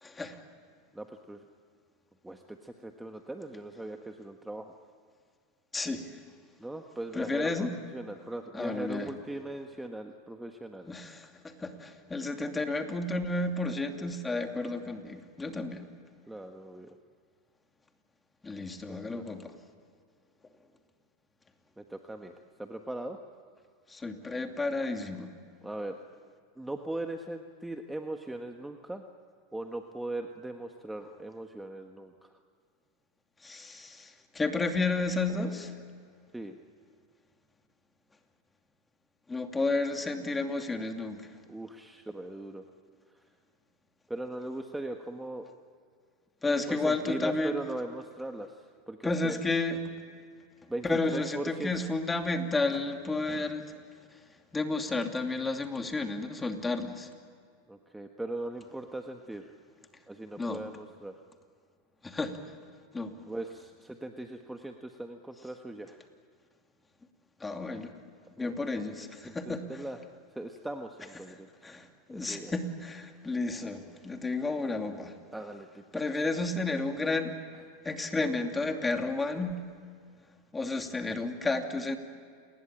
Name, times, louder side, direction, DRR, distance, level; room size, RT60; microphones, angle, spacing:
voice 1, 0.0-0.4 5.7-6.2 7.1-7.7 8.5-9.1 10.9-15.9 18.4-19.5 23.9-25.3 33.4-35.8 39.3-41.3 46.4-47.6 49.0-49.8 50.8-53.7 54.1-54.2 54.5-57.1 60.4-60.6 62.0-62.5 62.9-63.2 67.4-67.9 68.4-69.8 71.3-71.4 71.6-75.2 75.9-77.4 77.8-79.6 80.5-82.0, left 3 dB, 15° left, 5 dB, 2.6 m, -32 dB
voice 2, 0.9-1.4 2.2-4.7 6.6-10.9 16.3-16.9 18.9-19.2 21.8-22.3 22.6-23.2 25.6-26.0 26.6-29.0 29.5-32.3 36.3-36.6 41.5-42.6 44.1-45.5 46.7-49.4 50.7-51.7 57.7-59.5 60.1-61.1 63.3-66.0 68.4-68.6 69.2-70.0 70.3-71.7 72.1-72.5 75.3-76.0, right 1 dB, 5° right, 4 dB, 1.5 m, -39 dB
28.5 x 20.5 x 9.0 m, 2.2 s
hypercardioid pair, 115°, 0 cm